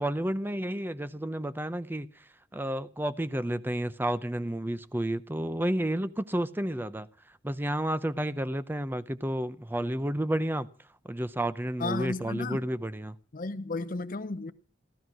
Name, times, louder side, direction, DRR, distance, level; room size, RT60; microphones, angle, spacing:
voice 1, 0.0-2.1 2.5-7.1 7.4-10.7 11.0-13.2, right 1 dB, 10° right, 0.7 m, -31 dB
voice 2, 11.8-12.6 13.3-14.5, left 3 dB, 45° left, 0.7 m, -33 dB
15.5 x 12.5 x 6.2 m
head